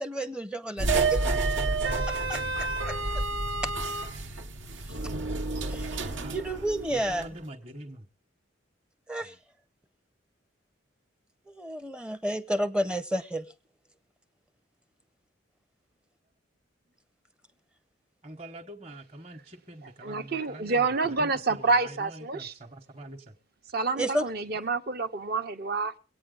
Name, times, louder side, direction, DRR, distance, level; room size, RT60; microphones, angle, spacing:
voice 1, 0.0-1.7 2.1-3.2 3.6-3.7 5.7-7.4 9.1-9.4 11.5-13.5 24.0-24.3, right 1 dB, 5° right, 0.6 m, -32 dB
sound 1, 0.8-7.3, right 3 dB, 75° right, 1.1 m, -29 dB
voice 2, 6.9-8.0 18.2-23.2, right 1 dB, 30° right, 1.1 m, -45 dB
voice 3, 19.8-22.5 23.7-26.0, right 3 dB, 50° right, 0.8 m, -28 dB
23.5 x 8.8 x 3.8 m
head